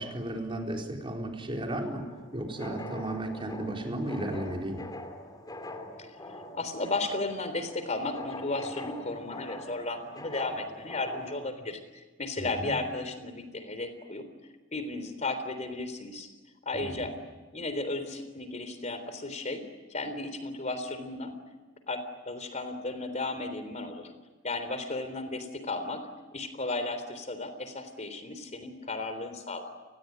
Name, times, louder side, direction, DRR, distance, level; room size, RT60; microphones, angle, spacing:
voice 1, 0.0-2.1 2.3-4.8 12.4-12.7 16.7-17.1, right 1 dB, 30° right, 1 dB, 4.3 m, -34 dB
sound 1, 1.8-11.5, left 1 dB, 20° left, 2.9 m, -43 dB
voice 2, 6.5-11.8 12.2-14.3 14.7-16.3 16.7-17.1 17.5-19.6 19.9-21.4 21.9-24.1 24.4-26.0 26.3-29.7, left 2 dB, 35° left, 10 dB, 3.6 m, -34 dB
29.5 x 20.5 x 9.3 m, 1.2 s
head